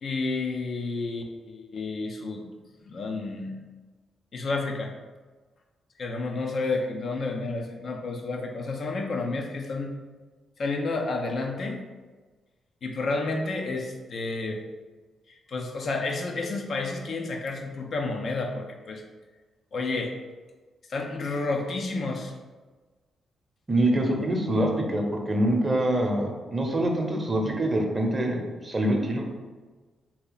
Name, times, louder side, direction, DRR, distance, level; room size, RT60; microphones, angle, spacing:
voice 1, 0.0-2.5 2.8-3.6 4.3-4.9 6.0-9.9 10.6-11.8 12.8-14.6 15.5-19.0 19.7-20.1 20.9-22.3, left 3 dB, 60° left, 1 dB, 0.5 m, -30 dB
voice 2, 23.7-29.3, right 1 dB, 35° right, 2 dB, 0.8 m, -25 dB
2.8 x 2.8 x 3.9 m, 1.3 s
hypercardioid pair, 45°, 0 cm